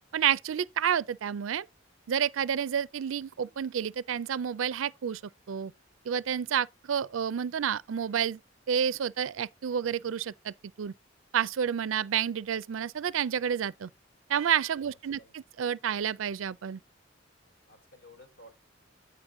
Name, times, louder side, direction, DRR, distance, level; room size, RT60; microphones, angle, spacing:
voice 1, 0.1-1.7 2.1-5.2 5.5-5.7 6.1-8.4 8.7-10.9 11.3-13.9 14.3-16.8, right 8 dB, 80° right, 0.4 m, -30 dB
voice 2, 14.8-15.3 17.7-18.5, left 1 dB, 70° left, 4.0 m, -55 dB
8.8 x 5.0 x 3.7 m
head